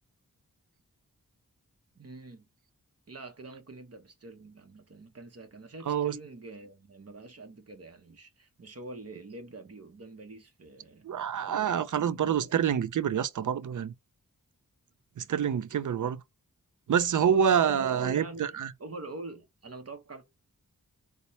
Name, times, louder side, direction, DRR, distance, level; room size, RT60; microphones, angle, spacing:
voice 1, 1.9-2.5 3.1-11.1 11.5-12.7 17.6-20.2, right 3 dB, 45° right, 0.8 m, -45 dB
voice 2, 11.0-13.9 15.2-16.2 16.9-18.7, right 8 dB, 60° right, 0.5 m, -27 dB
4.1 x 2.1 x 3.1 m
wide cardioid pair, 75°, 35 cm